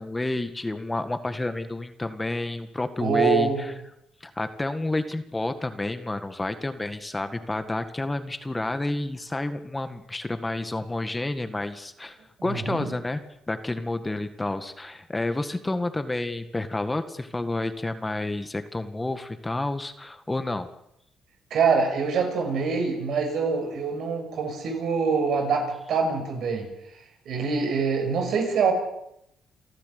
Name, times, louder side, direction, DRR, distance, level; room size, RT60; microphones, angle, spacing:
voice 1, 0.0-3.7 4.2-13.2 13.5-20.7, left 2 dB, 15° left, 9 dB, 1.8 m, -30 dB
voice 2, 3.0-3.6 12.4-12.9 21.5-26.7 27.3-28.7, right 5 dB, 70° right, 4 dB, 6.2 m, -25 dB
29.0 x 12.0 x 8.4 m, 0.80 s
cardioid pair, 90°, 0 cm